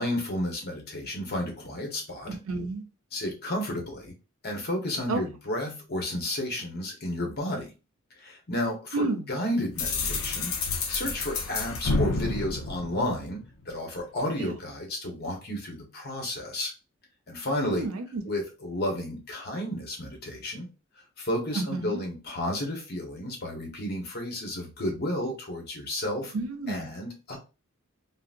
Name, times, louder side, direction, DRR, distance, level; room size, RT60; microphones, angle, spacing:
voice 1, 0.0-2.4 3.1-4.1 4.4-7.7 8.2-13.4 13.7-16.7 17.3-17.9 18.2-20.7 21.2-26.3 26.7-27.4, left 1 dB, 50° left, 1 dB, 1.1 m, -32 dB
voice 2, 2.3-2.8 5.1-5.2 8.9-9.3 14.4-14.6 17.6-18.2 21.5-22.0 26.3-26.9, right 3 dB, 85° right, 7 dB, 0.6 m, -31 dB
sound 1, 9.8-13.6, left 3 dB, 80° left, 0.6 m, -30 dB
3.8 x 2.1 x 2.5 m, 0.29 s
head